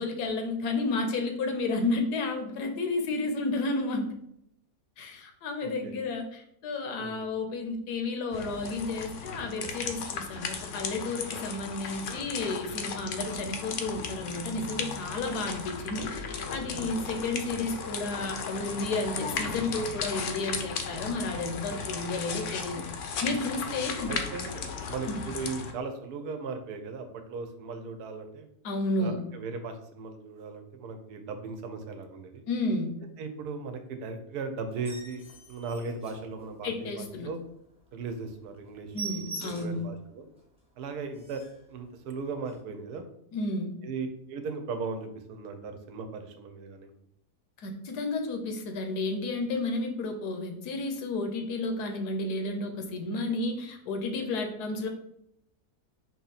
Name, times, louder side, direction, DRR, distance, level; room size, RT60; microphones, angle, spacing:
voice 1, 0.0-4.1 5.0-16.1 16.5-22.8 23.2-24.1 25.1-25.2 28.6-29.2 32.5-32.9 36.6-37.3 38.9-39.8 43.3-43.7 47.6-54.9, left 2 dB, 80° left, 5 dB, 1.3 m, -32 dB
voice 2, 5.6-5.9 7.0-7.2 21.7-21.9 24.1-28.5 29.0-32.4 33.2-37.4 37.9-40.3 40.8-41.4 41.7-43.1 43.8-46.9, right 4 dB, 80° right, 7 dB, 1.1 m, -37 dB
sound 1, 8.3-25.7, left 5 dB, 65° left, 0.8 m, -36 dB
Iron door is opened and closed, 34.7-36.8 37.3-37.4 37.8-37.9 38.2-38.3 38.6-39.9 40.4-40.5 40.8-40.9 41.1-41.7 42.4-42.6, right 3 dB, 5° right, 0.5 m, -43 dB
4.4 x 2.8 x 4.0 m, 0.75 s
omnidirectional pair, 1.7 m